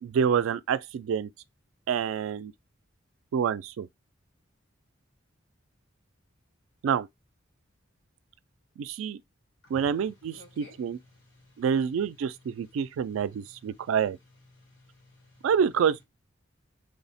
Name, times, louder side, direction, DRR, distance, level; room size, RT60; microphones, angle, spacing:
voice 1, 0.0-1.3 1.9-2.5 3.3-3.9 6.8-7.1 8.8-9.2 9.7-11.0 11.6-14.2 15.4-16.0, right 7 dB, 90° right, 0.3 m, -27 dB
voice 2, 9.6-11.6 12.3-14.0 14.5-15.5, left 1 dB, 70° left, 1.5 m, -56 dB
3.2 x 2.0 x 4.0 m
head